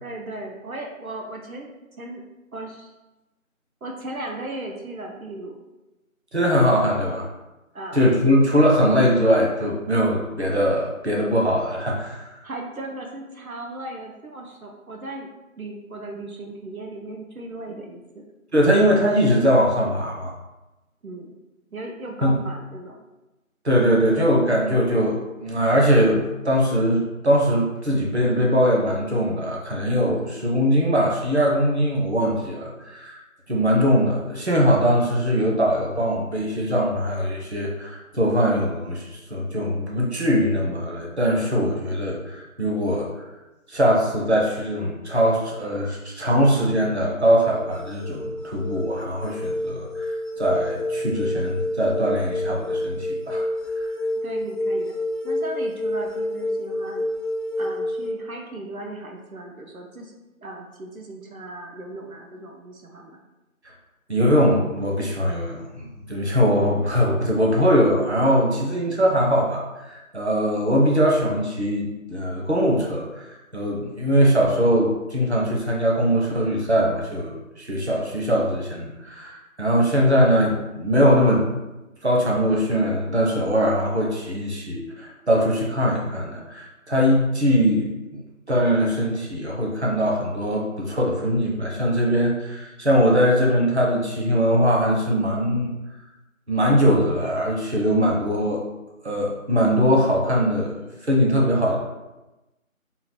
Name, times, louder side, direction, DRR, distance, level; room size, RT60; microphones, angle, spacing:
voice 1, 0.0-1.7 2.0-2.2 2.5-2.9 3.8-5.6 7.7-8.0 12.4-15.3 15.6-18.3 21.0-21.3 21.7-23.1 54.1-54.9 55.2-57.1 57.6-60.1 60.4-63.2, right 2 dB, 80° right, 1 dB, 0.7 m, -36 dB
voice 2, 6.3-7.3 7.9-12.3 18.5-20.3 22.2-22.3 23.6-33.2 33.5-43.1 43.7-53.5 64.1-73.3 73.5-81.5 82.0-88.2 88.5-95.7 96.5-98.6 99.0-101.8, equal, 50° right, -2 dB, 0.8 m, -21 dB
sound 1, 47.5-58.1, left 1 dB, ahead, 0.3 m, -28 dB
3.7 x 2.2 x 4.3 m, 1.0 s
figure-of-eight pair, 175°, 42 cm